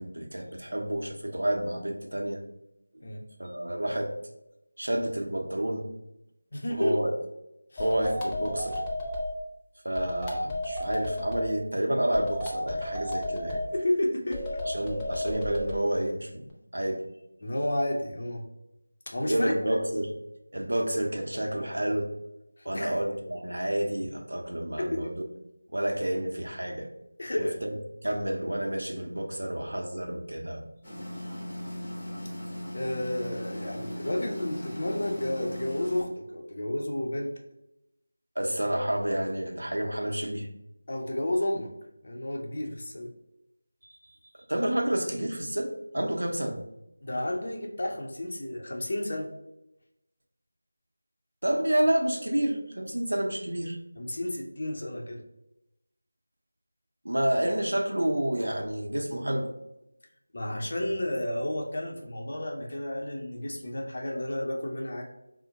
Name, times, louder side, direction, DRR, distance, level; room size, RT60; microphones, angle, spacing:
voice 1, 0.0-2.4 3.4-4.1 4.8-5.9 6.7-7.1 7.8-8.8 9.8-13.6 14.6-16.5 16.7-17.0 19.2-20.2 20.5-22.1 22.6-25.1 25.7-26.9 27.4-27.7 28.0-30.6 38.4-40.5 44.0-44.2 44.5-46.6 51.4-53.8 57.0-59.5, right 1 dB, 85° right, 2 dB, 0.6 m, -29 dB
voice 2, 6.5-7.0 7.7-7.8 13.7-14.5 17.4-18.4 19.1-19.5 22.6-23.0 24.8-25.1 27.2-27.6 32.7-37.3 40.9-41.7 42.0-43.1 47.0-49.3 54.0-55.2 60.3-65.0, left 1 dB, 50° left, 1 dB, 0.7 m, -31 dB
sound 1, 7.8-9.3 10.0-11.5 12.1-13.7 14.3-15.8, left 1 dB, 10° left, 0.4 m, -33 dB
sound 2, 30.8-36.0, equal, 35° left, 1.0 m, -38 dB
4.2 x 2.1 x 2.8 m, 0.89 s
figure-of-eight pair, 175°, 0 cm